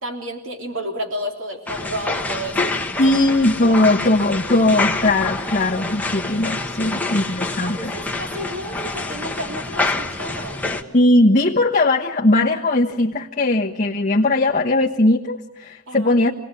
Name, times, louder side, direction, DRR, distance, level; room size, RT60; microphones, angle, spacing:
voice 1, 0.0-3.2 6.8-7.1 7.6-10.6 15.9-16.1, equal, 60° right, 3 dB, 3.4 m, -32 dB
sound 1, 1.7-10.8, left 3 dB, 5° left, 1.5 m, -27 dB
voice 2, 3.0-7.9 10.9-16.3, left 2 dB, 35° left, -2 dB, 1.3 m, -18 dB
27.0 x 18.5 x 8.4 m, 0.96 s
head